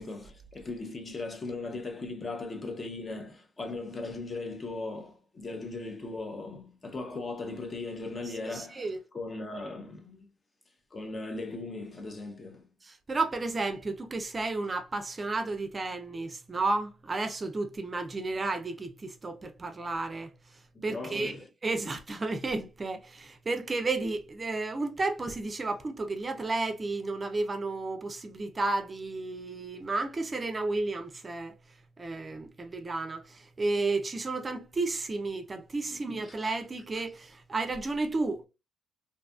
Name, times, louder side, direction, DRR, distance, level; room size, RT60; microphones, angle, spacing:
voice 1, 0.0-8.9 9.1-10.2 10.9-12.7 20.7-21.5 36.2-36.4, left 3 dB, 30° left, 0.6 m, -38 dB
voice 2, 8.5-9.0 12.8-21.4 21.6-31.6 32.0-38.5, right 3 dB, 30° right, 0.4 m, -32 dB
2.6 x 2.3 x 2.3 m
cardioid pair, 90°, 0 cm